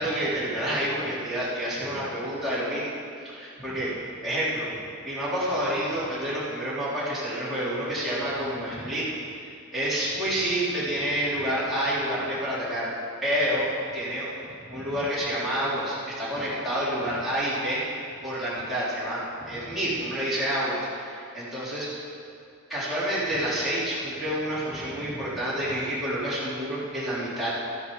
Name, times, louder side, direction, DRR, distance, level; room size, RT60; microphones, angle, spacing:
voice 1, 0.0-2.9 3.2-3.9 4.2-4.7 5.0-9.1 9.4-12.9 13.2-13.7 13.9-17.8 18.2-22.0 22.7-27.6, equal, ahead, -11 dB, 3.9 m, -28 dB
13.5 x 11.0 x 5.2 m, 2.4 s
head